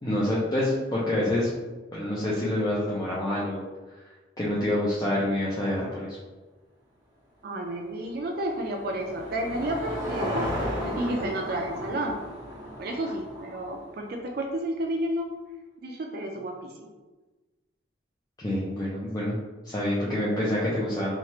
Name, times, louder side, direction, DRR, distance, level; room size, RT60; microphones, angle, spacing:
voice 1, 0.0-1.5 1.9-3.6 4.4-6.2 18.4-19.4 19.6-21.1, left 1 dB, 20° left, -7 dB, 0.5 m, -27 dB
voice 2, 7.4-10.5 10.8-12.2 12.8-15.3 15.8-16.9, right 1 dB, 55° right, 1 dB, 0.4 m, -31 dB
Car passing by / Engine, 7.7-14.2, equal, 20° right, 1.1 m, -34 dB
3.1 x 2.4 x 4.1 m, 1.2 s
head